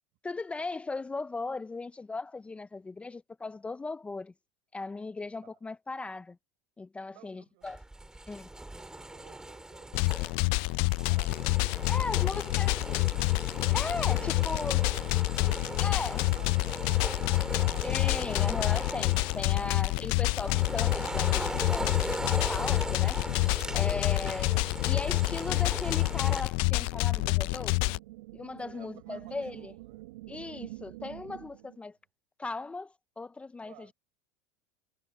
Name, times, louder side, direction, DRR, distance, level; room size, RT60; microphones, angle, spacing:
voice 1, 0.2-4.3 4.7-6.4 6.8-7.8 8.3-8.5 11.9-12.7 13.7-14.8 15.8-16.3 17.8-23.2 23.7-24.6 24.8-27.9 28.3-29.7 30.3-32.0 32.4-33.9, left 3 dB, 10° left, 0.6 m, -37 dB
voice 2, 7.1-7.7 8.7-12.8 14.1-18.4 19.6-19.8 28.6-30.1 31.8-31.9 33.6-33.9, right 26 dB, 65° right, 4.6 m, -55 dB
sound 1, 7.6-26.4, right 2 dB, 5° right, 2.4 m, -39 dB
sound 2, 9.9-28.0, left 27 dB, 65° left, 0.4 m, -28 dB
sound 3, 26.7-31.8, right 19 dB, 90° right, 0.9 m, -47 dB
supercardioid pair, 120°, 10 cm